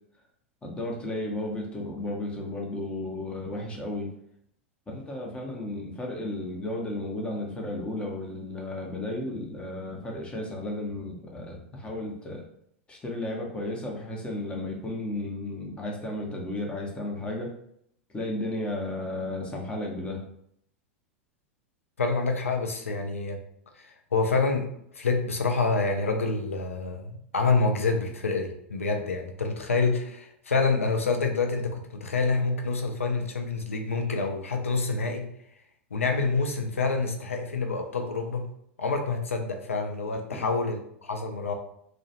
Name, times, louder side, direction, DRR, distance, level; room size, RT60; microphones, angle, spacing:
voice 1, 0.6-4.1 4.9-12.4 12.9-17.5 18.1-20.2 40.1-40.5, left 1 dB, 15° left, -1 dB, 0.7 m, -34 dB
voice 2, 22.0-23.4 24.1-24.7 25.0-35.3 35.9-38.4 38.8-41.5, left 4 dB, 85° left, 4 dB, 0.4 m, -27 dB
2.3 x 2.1 x 2.8 m, 0.70 s
figure-of-eight pair, 95°, 7 cm